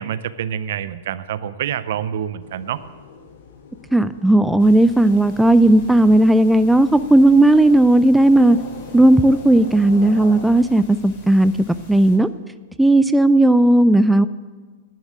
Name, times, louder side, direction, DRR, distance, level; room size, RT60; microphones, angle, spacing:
voice 1, 0.0-2.8, right 9 dB, 65° right, 14 dB, 0.6 m, -27 dB
sound 1, 2.4-10.6, left 5 dB, 60° left, 1.7 m, -41 dB
voice 2, 3.9-8.6 8.9-11.5 11.9-12.3 12.8-14.3, right 1 dB, 5° right, 12 dB, 0.3 m, -14 dB
sound 2, 4.6-12.2, left 2 dB, 45° left, 4.2 m, -45 dB
10.5 x 7.2 x 8.1 m, 1.5 s
hypercardioid pair, 115°, 0 cm